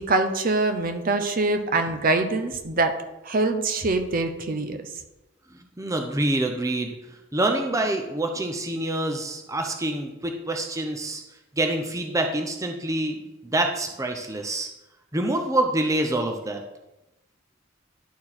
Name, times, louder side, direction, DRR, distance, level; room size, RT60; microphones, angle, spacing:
voice 1, 0.0-2.9 3.2-4.8, right 2 dB, 45° right, 7 dB, 0.7 m, -24 dB
voice 2, 5.5-11.2 11.6-13.2 13.4-14.7 15.1-16.6, right 1 dB, 15° right, 4 dB, 0.7 m, -26 dB
11.0 x 4.4 x 4.3 m, 0.99 s
head